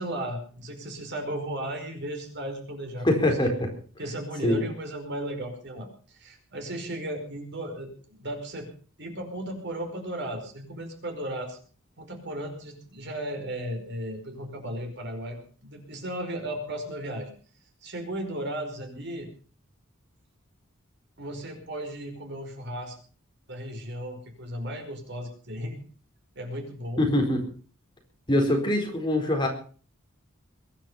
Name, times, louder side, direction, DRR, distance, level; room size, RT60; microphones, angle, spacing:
voice 1, 0.0-3.5 4.0-8.7 9.0-11.6 12.0-17.3 17.8-19.3 21.2-23.0 23.5-25.8 26.3-27.1, right 1 dB, 55° right, 4 dB, 5.1 m, -35 dB
voice 2, 3.0-3.7 4.4-4.6 27.0-27.4 28.3-29.5, left 1 dB, 20° left, 2 dB, 4.3 m, -23 dB
22.5 x 11.0 x 5.6 m, 0.42 s
head